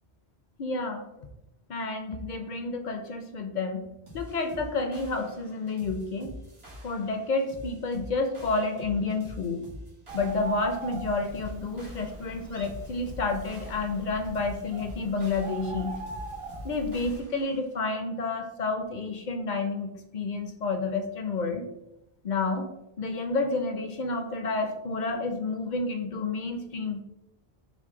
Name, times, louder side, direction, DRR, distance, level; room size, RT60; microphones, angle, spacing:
voice 1, 0.6-1.3 1.7-3.9 4.1-6.3 6.8-9.6 10.1-16.0 16.6-21.7 22.2-22.7 23.0-27.0, left 3 dB, 55° left, 5 dB, 0.6 m, -30 dB
sound 1, 4.1-17.6, left 1 dB, 75° right, 1.8 m, -45 dB
Bird, 10.1-17.2, right 3 dB, 55° right, 0.4 m, -41 dB
6.1 x 2.1 x 3.7 m, 0.88 s
omnidirectional pair, 1.1 m